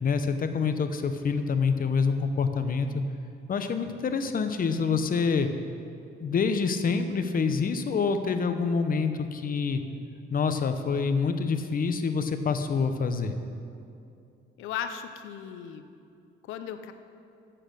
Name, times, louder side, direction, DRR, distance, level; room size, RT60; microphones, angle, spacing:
voice 1, 0.0-3.0 3.5-5.5 6.2-9.8 10.3-13.4, left 5 dB, 45° left, 8 dB, 0.8 m, -26 dB
voice 2, 14.6-15.8 16.5-16.9, left 9 dB, 90° left, 9 dB, 0.7 m, -36 dB
8.5 x 7.8 x 6.5 m, 2.5 s
cardioid pair, 90°, 20 cm